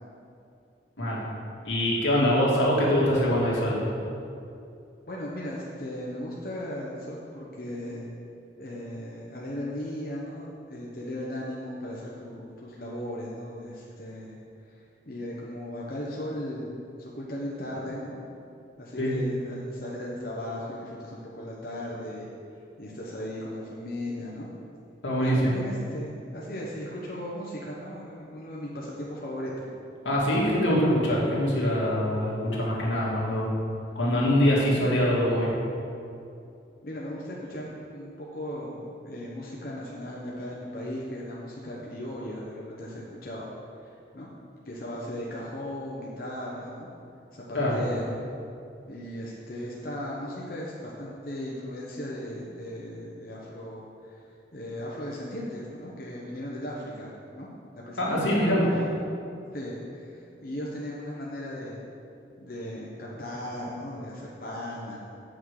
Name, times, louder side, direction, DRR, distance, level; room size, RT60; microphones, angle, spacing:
voice 1, 1.6-3.8 19.0-19.1 25.0-25.6 30.0-33.5 33.9-35.5 47.5-47.8 58.0-58.6, equal, 90° left, -5 dB, 2.1 m, -24 dB
voice 2, 5.1-8.1 8.6-14.4 14.7-16.7 17.0-18.2 18.8-22.3 22.8-24.5 25.2-29.7 36.8-43.5 43.8-44.3 44.6-46.9 47.3-48.3 48.9-54.2 54.5-57.5 57.9-58.9 59.5-61.8 62.4-65.0, left 1 dB, 50° left, -5 dB, 1.0 m, -37 dB
8.5 x 6.0 x 4.8 m, 2.6 s
head